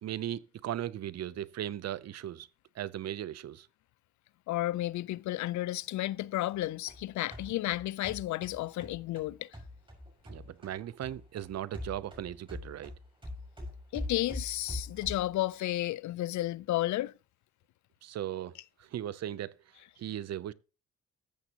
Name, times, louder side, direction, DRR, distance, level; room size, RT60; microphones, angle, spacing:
voice 1, 0.0-2.5 2.8-3.7 10.2-12.9 18.0-18.5 18.8-19.5 20.0-20.5, right 11 dB, 60° right, 0.7 m, -37 dB
voice 2, 4.5-9.5 13.9-17.1, left 15 dB, 70° left, 0.5 m, -32 dB
sound 1, 6.5-10.8 11.0-15.4, left 1 dB, 15° right, 6.0 m, -43 dB
14.0 x 8.0 x 2.9 m
cardioid pair, 90°, 30 cm